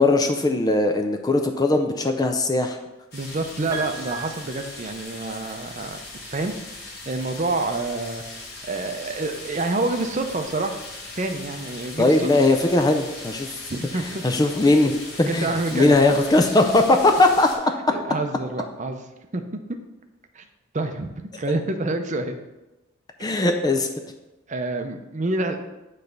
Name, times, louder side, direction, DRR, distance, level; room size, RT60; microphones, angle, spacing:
voice 1, 0.0-2.8 12.0-13.5 14.2-14.9 15.2-17.5 23.2-23.9, left 2 dB, 20° left, 5 dB, 0.4 m, -19 dB
sound 1, 3.1-17.6, left 2 dB, 50° left, 1.6 m, -39 dB
voice 2, 3.1-6.5 7.1-8.2 8.7-10.8 11.1-12.3 13.7-14.2 15.3-15.9 17.9-19.0 19.3-19.4 20.3-20.4 20.7-22.4 24.5-25.6, right 2 dB, 35° right, 6 dB, 0.6 m, -27 dB
Piano, 3.7-5.7 7.0-7.1, right 3 dB, 15° right, 1.1 m, -37 dB
8.2 x 3.3 x 5.2 m, 1.0 s
head